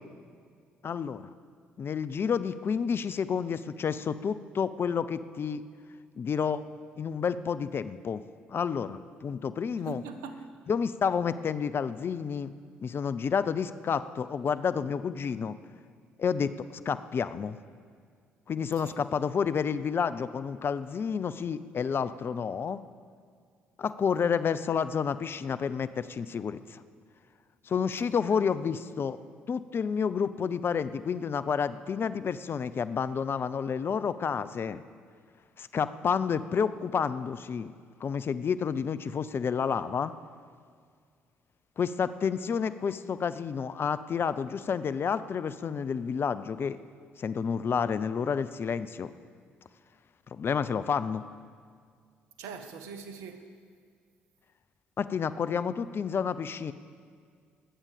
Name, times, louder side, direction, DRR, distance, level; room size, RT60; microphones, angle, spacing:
voice 1, 0.8-1.3 1.8-5.6 6.2-6.6 7.0-8.2 8.5-10.0 10.7-12.5 12.8-15.6 16.2-17.6 18.5-22.8 23.8-26.8 27.7-29.2 29.5-34.8 35.6-37.7 38.0-40.1 41.8-46.8 47.2-49.1 50.3-51.2 55.0-56.7, left 6 dB, 45° left, 14 dB, 0.6 m, -30 dB
voice 2, 9.8-10.5 18.8-19.0 28.0-28.1 52.4-53.5, right 5 dB, 70° right, 8 dB, 1.2 m, -42 dB
20.5 x 8.9 x 6.8 m, 2.1 s
hypercardioid pair, 50°, 5 cm